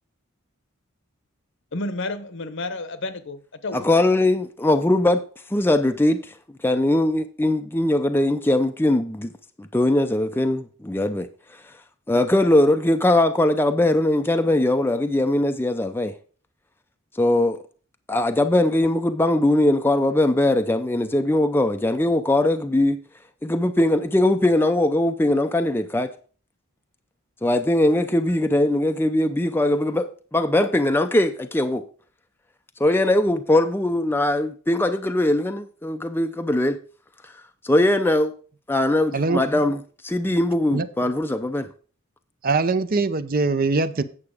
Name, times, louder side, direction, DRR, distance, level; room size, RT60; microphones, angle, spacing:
voice 1, 1.7-3.9, left 2 dB, 60° left, 0.9 m, -31 dB
voice 2, 3.7-5.2 5.5-6.3 6.6-9.3 9.6-11.3 12.1-16.1 17.1-17.6 18.1-23.0 23.4-26.1 27.4-31.8 32.8-36.8 37.2-37.3 37.6-38.3 38.7-39.8 40.0-41.7, left 1 dB, 10° left, 0.5 m, -20 dB
voice 3, 42.4-44.0, right 3 dB, 45° right, 0.6 m, -22 dB
8.7 x 7.0 x 4.9 m
head